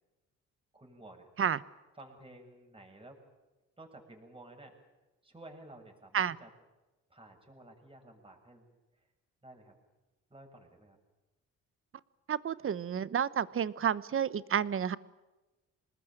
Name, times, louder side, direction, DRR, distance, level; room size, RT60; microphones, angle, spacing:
voice 1, 0.7-1.3 2.0-3.2 3.8-4.8 5.2-6.5 7.1-8.7 9.0-9.1 9.4-9.7 10.3-11.0, right 1 dB, 15° right, 2 dB, 7.2 m, -53 dB
voice 2, 12.3-15.0, right 8 dB, 45° right, 17 dB, 1.1 m, -30 dB
26.0 x 20.5 x 9.0 m, 1.1 s
cardioid pair, 90°, 30 cm